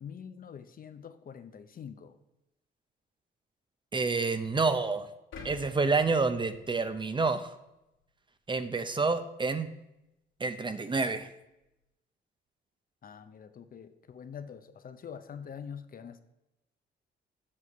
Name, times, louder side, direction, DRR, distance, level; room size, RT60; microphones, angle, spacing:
voice 1, 0.0-2.1 13.0-16.2, left 7 dB, 45° left, 11 dB, 0.7 m, -45 dB
voice 2, 3.9-5.1 5.4-7.5 8.5-9.7 10.4-11.3, right 4 dB, 25° right, 10 dB, 0.6 m, -28 dB
sound 1, 5.3-7.5 8.0-8.1, left 5 dB, 75° left, 2.2 m, -49 dB
7.5 x 6.3 x 5.6 m, 0.90 s
cardioid pair, 90°, 20 cm